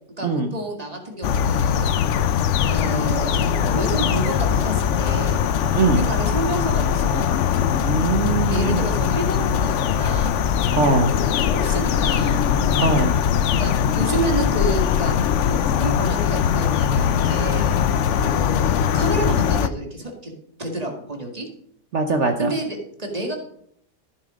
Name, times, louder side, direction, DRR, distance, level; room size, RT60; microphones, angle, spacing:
voice 1, 0.2-1.9 2.6-5.5 5.8-7.4 8.5-10.4 11.4-12.5 13.6-15.2 15.5-17.8 18.2-20.3 20.6-21.5 22.4-23.4, right 1 dB, 20° right, 2 dB, 2.1 m, -29 dB
sound 1, 1.2-19.7, left 8 dB, 70° left, 0.7 m, -21 dB
voice 2, 5.7-6.0 7.8-8.9 10.7-11.1 12.8-13.1 21.9-22.5, right 4 dB, 55° right, 6 dB, 0.9 m, -21 dB
13.5 x 7.2 x 5.1 m, 0.68 s
omnidirectional pair, 1.9 m